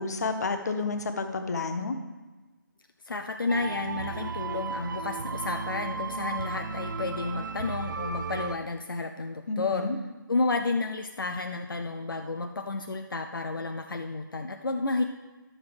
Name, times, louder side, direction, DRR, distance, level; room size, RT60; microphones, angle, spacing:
voice 1, 0.0-2.0 9.5-10.0, left 3 dB, 50° left, 7 dB, 0.9 m, -30 dB
voice 2, 3.0-9.9 10.3-15.0, left 3 dB, 75° left, 5 dB, 0.6 m, -31 dB
sound 1, 3.5-8.6, right 4 dB, 65° right, 0.5 m, -34 dB
11.0 x 7.2 x 3.4 m, 1.2 s
figure-of-eight pair, 155°, 11 cm